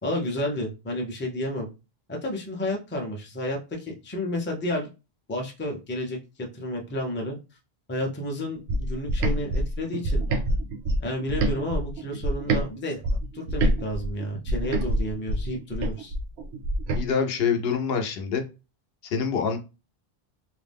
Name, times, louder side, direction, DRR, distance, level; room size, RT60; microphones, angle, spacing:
voice 1, 0.0-1.7 2.1-4.9 5.3-7.4 7.9-10.2 11.0-16.1, left 1 dB, 15° left, 1 dB, 0.4 m, -31 dB
sound 1, 8.7-12.7 13.0-17.0, right 1 dB, 85° right, 0.8 m, -26 dB
voice 2, 16.9-18.4 19.0-19.6, left 6 dB, 75° left, 5 dB, 0.8 m, -25 dB
2.5 x 2.1 x 3.4 m, 0.29 s
omnidirectional pair, 1.0 m